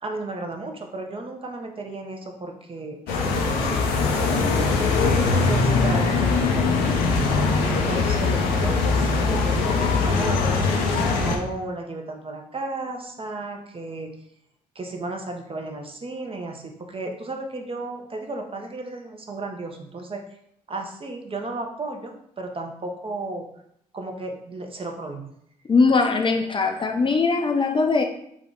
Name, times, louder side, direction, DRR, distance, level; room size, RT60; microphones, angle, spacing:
voice 1, 0.0-4.7 5.2-6.9 7.6-10.6 11.0-14.1 14.7-20.2 20.7-23.5 23.9-25.3, right 2 dB, 35° right, 3 dB, 0.7 m, -34 dB
sound 1, 3.1-11.4, left 4 dB, 75° left, 0.6 m, -21 dB
voice 2, 25.7-28.0, left 4 dB, 30° left, 3 dB, 0.5 m, -20 dB
3.5 x 2.2 x 3.8 m, 0.71 s
hypercardioid pair, 45°, 17 cm